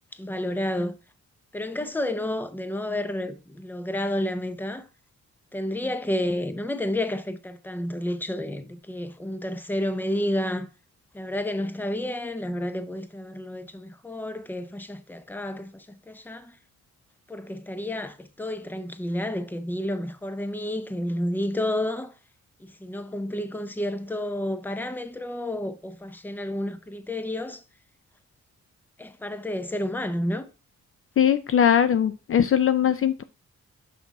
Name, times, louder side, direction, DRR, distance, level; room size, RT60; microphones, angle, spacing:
voice 1, 0.1-1.0 1.5-4.9 5.5-10.7 11.1-16.6 17.3-22.1 22.6-27.6 29.0-30.5, left 1 dB, 5° left, 0.6 m, -30 dB
voice 2, 31.2-33.2, left 9 dB, 45° left, 0.4 m, -20 dB
6.0 x 5.9 x 4.1 m
wide cardioid pair, 140°, 29 cm